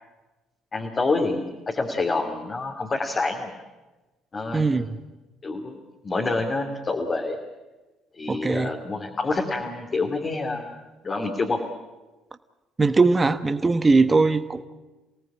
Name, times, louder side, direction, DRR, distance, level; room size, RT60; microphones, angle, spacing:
voice 1, 0.7-3.5 4.3-4.9 5.4-7.4 8.1-10.8 11.0-11.6, left 3 dB, 35° left, 1 dB, 3.0 m, -27 dB
voice 2, 4.5-5.0 8.3-8.7 12.8-14.6, right 3 dB, 25° right, 11 dB, 1.2 m, -20 dB
27.5 x 18.5 x 8.8 m, 1.2 s
hypercardioid pair, 50°, 0 cm